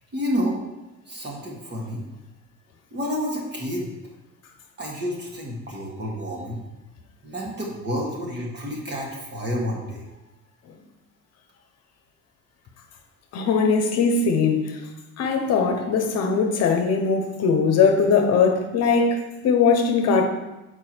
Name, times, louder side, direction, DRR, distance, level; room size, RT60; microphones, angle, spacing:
voice 1, 0.1-0.6 1.1-2.1 2.9-3.9 4.8-6.6 7.2-10.0, equal, 35° right, -2 dB, 1.8 m, -29 dB
voice 2, 13.3-14.8 15.2-20.2, left 5 dB, 55° left, 4 dB, 0.9 m, -20 dB
7.0 x 4.8 x 4.5 m, 1.0 s
cardioid pair, 145°, 31 cm